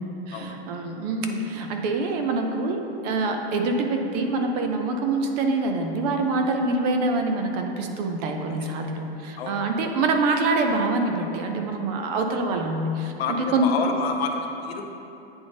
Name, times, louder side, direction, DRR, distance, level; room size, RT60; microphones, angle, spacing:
voice 1, 0.3-13.1 13.4-13.7, right 3 dB, 40° right, 4 dB, 0.6 m, -25 dB
voice 2, 8.4-8.9 9.4-9.7 13.2-14.9, left 5 dB, 75° left, 4 dB, 0.8 m, -30 dB
8.8 x 3.5 x 3.9 m, 2.9 s
supercardioid pair, 145°, 31 cm